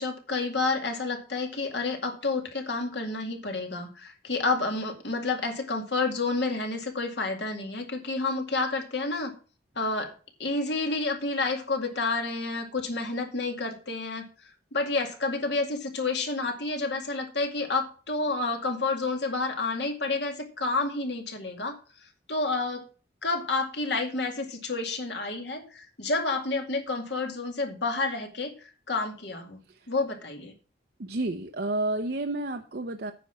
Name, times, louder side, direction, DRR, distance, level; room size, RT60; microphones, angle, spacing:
voice 1, 0.0-9.3 9.8-10.1 10.4-14.2 14.7-21.8 22.3-22.8 23.2-29.6 29.9-30.5, left 3 dB, 70° left, 4 dB, 2.2 m, -29 dB
voice 2, 31.0-33.1, right 2 dB, 55° right, 5 dB, 0.7 m, -30 dB
9.3 x 5.4 x 7.1 m, 0.37 s
head